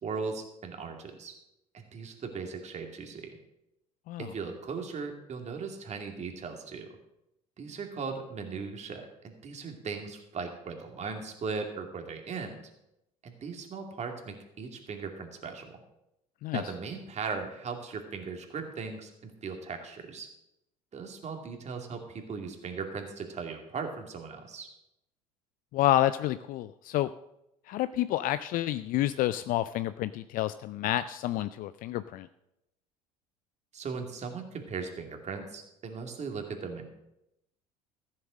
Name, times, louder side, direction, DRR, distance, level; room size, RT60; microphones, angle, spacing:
voice 1, 0.0-1.3 1.7-3.4 4.2-7.0 7.6-12.6 13.2-15.8 16.5-20.3 20.9-24.7 33.7-36.9, right 5 dB, 40° right, 4 dB, 2.5 m, -38 dB
voice 2, 25.7-27.1 27.7-32.3, left 14 dB, 50° left, 13 dB, 0.4 m, -29 dB
14.0 x 7.4 x 6.3 m, 0.84 s
hypercardioid pair, 65°, 18 cm